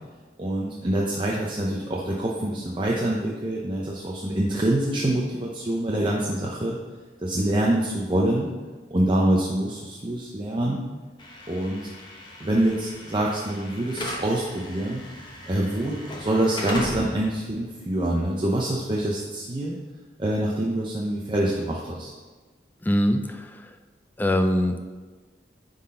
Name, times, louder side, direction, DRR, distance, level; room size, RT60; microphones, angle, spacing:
voice 1, 0.4-6.8 7.2-8.5 8.9-10.8 11.5-11.9 12.4-15.0 15.5-19.8 20.2-22.1, right 1 dB, 30° right, -3 dB, 0.7 m, -25 dB
Slam / Alarm, 11.2-19.3, left 1 dB, 25° left, 1.0 m, -38 dB
voice 2, 22.8-23.6 24.2-24.8, equal, 10° left, 7 dB, 0.3 m, -23 dB
9.6 x 4.0 x 3.8 m, 1.3 s
head